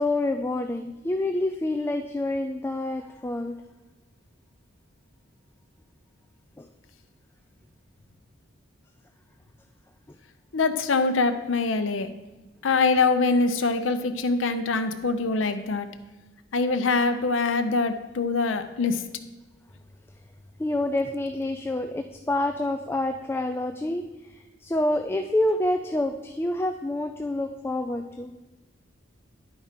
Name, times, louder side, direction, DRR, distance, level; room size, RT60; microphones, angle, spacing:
voice 1, 0.0-3.6 6.6-6.7 20.6-28.3, left 1 dB, 10° left, 5 dB, 0.3 m, -27 dB
voice 2, 10.5-12.1 12.6-15.9 16.5-19.0, left 3 dB, 80° left, 9 dB, 0.7 m, -24 dB
11.0 x 4.4 x 5.0 m, 1.1 s
head